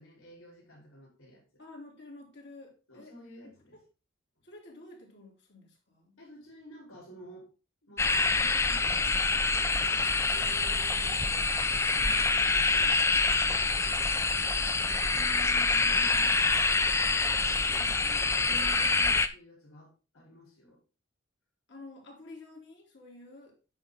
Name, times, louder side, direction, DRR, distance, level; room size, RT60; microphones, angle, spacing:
voice 1, 0.0-1.4 2.9-3.8 6.2-7.5 7.8-9.5 9.9-11.2 12.0-13.6 15.1-17.1 18.0-20.8, equal, 85° left, -3 dB, 3.9 m, -51 dB
voice 2, 1.6-3.1 3.4-3.8 4.4-6.2 17.7-18.0 21.7-23.5, left 2 dB, 55° left, -1 dB, 3.1 m, -50 dB
sound 1, 8.0-19.3, left 3 dB, 15° left, 0.4 m, -26 dB
8.9 x 5.8 x 3.8 m, 0.34 s
head